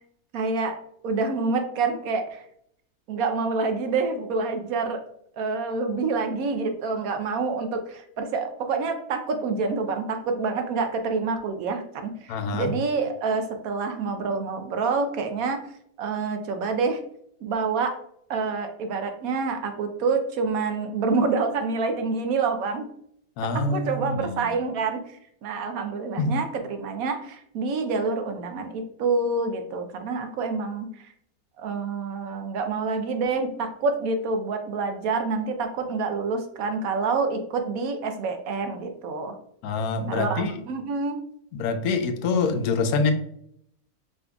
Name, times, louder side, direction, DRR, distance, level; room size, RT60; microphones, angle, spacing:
voice 1, 0.3-0.8 1.0-2.4 3.1-5.0 5.3-15.6 16.0-17.0 17.4-18.0 18.3-22.9 23.5-25.0 25.4-31.1 31.6-39.4 40.1-41.2, right 4 dB, 70° right, 6 dB, 1.1 m, -27 dB
voice 2, 12.3-12.7 23.4-24.4 26.2-26.3 39.6-40.6 41.5-43.1, left 4 dB, 85° left, 8 dB, 1.1 m, -25 dB
5.0 x 3.7 x 2.2 m, 0.70 s
omnidirectional pair, 1.6 m